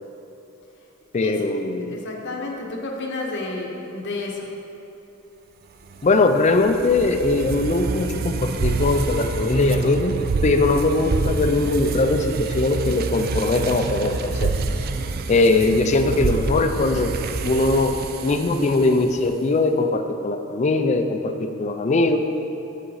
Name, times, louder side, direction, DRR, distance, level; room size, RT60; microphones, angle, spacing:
voice 1, 1.1-1.9 6.0-14.5 15.3-17.1 17.4-18.0 18.2-22.2, left 2 dB, 35° left, 7 dB, 0.4 m, -20 dB
voice 2, 1.9-4.5, left 2 dB, 60° left, 0 dB, 0.8 m, -31 dB
sound 1, 5.9-19.3, right 4 dB, 45° right, 0.4 m, -27 dB
6.6 x 6.2 x 4.7 m, 3.0 s
head